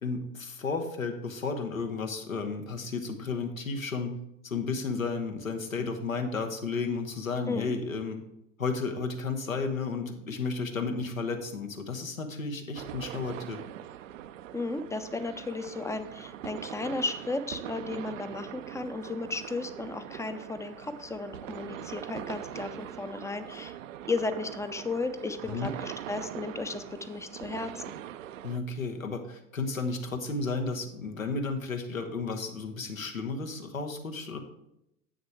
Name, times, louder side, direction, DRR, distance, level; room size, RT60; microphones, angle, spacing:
voice 1, 0.0-4.1 4.4-8.2 8.6-13.6 25.5-25.7 28.4-34.4, left 4 dB, 90° left, 5 dB, 1.1 m, -33 dB
sound 1, 12.8-28.6, right 11 dB, 70° right, 0.5 m, -42 dB
voice 2, 14.5-23.8 24.1-27.9, left 3 dB, 10° left, 10 dB, 0.5 m, -34 dB
8.1 x 6.4 x 4.5 m, 0.82 s
figure-of-eight pair, 80°, 39 cm